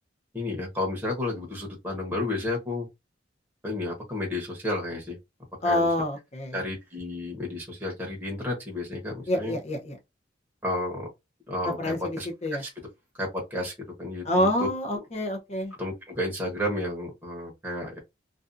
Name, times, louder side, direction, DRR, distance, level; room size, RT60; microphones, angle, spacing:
voice 1, 0.3-2.9 3.6-5.2 5.6-5.9 6.5-9.6 10.6-11.1 11.5-12.3 12.6-12.7 13.2-13.7 14.0-14.7 14.9-15.0 15.8-18.0, left 1 dB, 10° right, 0.9 m, -31 dB
voice 2, 5.6-6.6 9.3-10.0 11.8-12.6 14.2-15.7, left 1 dB, 40° left, 0.7 m, -27 dB
2.5 x 2.3 x 2.5 m
head